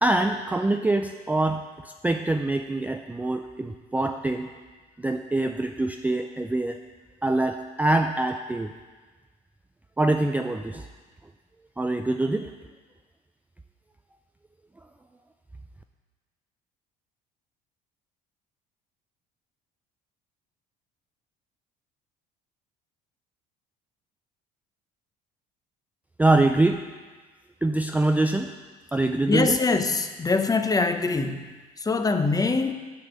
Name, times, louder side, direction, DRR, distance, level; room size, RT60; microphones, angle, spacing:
voice 1, 0.0-4.5 5.0-6.8 7.2-8.7 10.0-10.9 11.8-12.5 26.2-26.8 27.6-28.5 28.9-29.5, right 2 dB, 10° right, 5 dB, 0.4 m, -24 dB
voice 2, 29.3-32.7, left 3 dB, 20° left, 7 dB, 0.7 m, -24 dB
9.3 x 5.0 x 6.6 m, 1.3 s
supercardioid pair, 85°, 19 cm